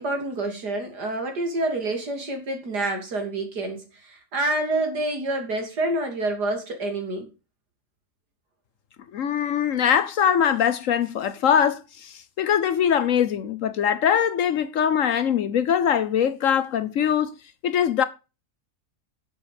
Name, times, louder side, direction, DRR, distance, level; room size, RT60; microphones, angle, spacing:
voice 1, 0.0-7.3, right 2 dB, 85° right, 3.4 m, -27 dB
voice 2, 9.1-17.3 17.6-18.0, left 8 dB, 60° left, 1.0 m, -22 dB
10.5 x 7.4 x 5.1 m
omnidirectional pair, 1.7 m